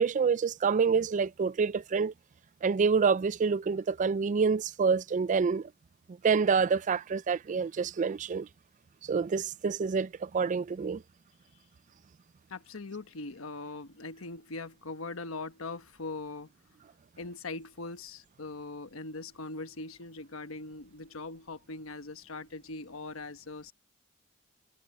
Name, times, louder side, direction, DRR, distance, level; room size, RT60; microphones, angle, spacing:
voice 1, 0.0-2.1 2.6-5.7 6.2-8.5 9.0-11.0, right 5 dB, 40° right, 0.4 m, -27 dB
voice 2, 12.5-16.5 17.2-23.7, left 3 dB, 90° left, 1.2 m, -41 dB
head